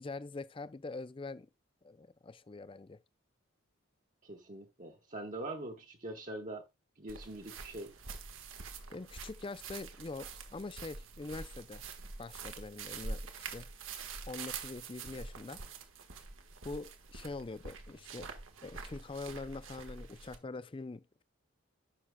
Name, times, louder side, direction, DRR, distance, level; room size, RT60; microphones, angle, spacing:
voice 1, 0.0-1.5 1.8-3.0 8.9-11.9 12.2-13.7 14.3-15.6 16.6-18.3 18.6-21.2, left 3 dB, 25° left, 0.4 m, -44 dB
voice 2, 4.2-6.6 7.0-7.9, right 2 dB, 35° right, 1.2 m, -43 dB
sound 1, 7.1-20.4, right 4 dB, 70° right, 1.3 m, -46 dB
14.5 x 6.0 x 2.2 m
head